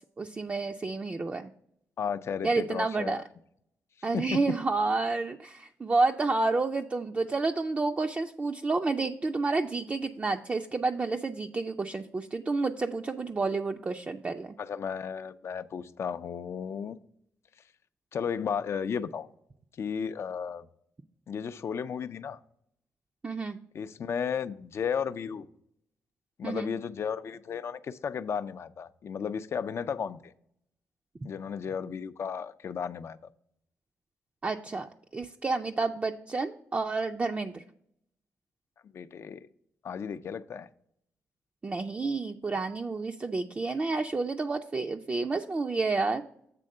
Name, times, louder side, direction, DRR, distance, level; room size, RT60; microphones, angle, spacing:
voice 1, 0.2-1.5 2.4-3.2 4.0-14.5 23.2-23.6 26.4-26.7 34.4-37.6 41.6-46.2, right 3 dB, 25° right, 4 dB, 0.4 m, -30 dB
voice 2, 2.0-3.2 4.1-4.4 14.6-17.0 18.1-19.3 19.8-20.7 21.3-22.4 23.7-25.5 26.4-30.3 31.2-33.2 38.9-39.5 39.8-40.7, left 7 dB, 55° left, 12 dB, 0.4 m, -34 dB
7.6 x 3.5 x 6.5 m, 0.70 s
cardioid pair, 80°, 5 cm